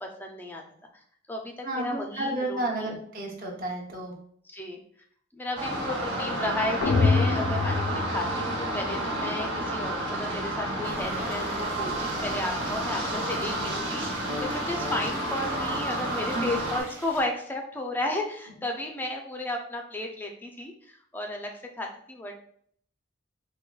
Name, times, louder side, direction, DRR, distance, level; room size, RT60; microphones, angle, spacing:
voice 1, 0.0-0.6 1.3-3.0 4.5-4.8 5.3-11.9 12.2-22.3, left 1 dB, 10° left, 2 dB, 0.4 m, -33 dB
voice 2, 1.6-4.1 16.3-16.4, right 1 dB, 45° right, 0 dB, 0.7 m, -31 dB
sound 1, 5.6-16.8, right 1 dB, 70° right, 1.0 m, -30 dB
sound 2, 6.8-8.9, left 4 dB, 80° left, 0.4 m, -25 dB
Stream, 10.8-17.2, right 1 dB, 10° right, 0.7 m, -45 dB
4.5 x 2.2 x 2.3 m, 0.63 s
head